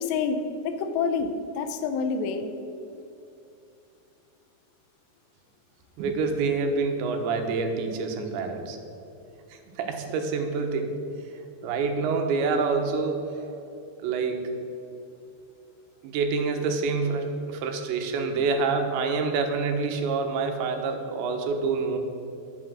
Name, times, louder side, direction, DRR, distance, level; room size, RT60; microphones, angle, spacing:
voice 1, 0.0-2.5, left 5 dB, 90° left, 8 dB, 3.0 m, -28 dB
voice 2, 6.0-8.8 9.5-11.0 11.3-13.5 14.0-14.5 16.0-22.0, right 4 dB, 90° right, 4 dB, 3.5 m, -27 dB
10.0 x 8.4 x 7.5 m, 2.7 s
omnidirectional pair, 5.0 m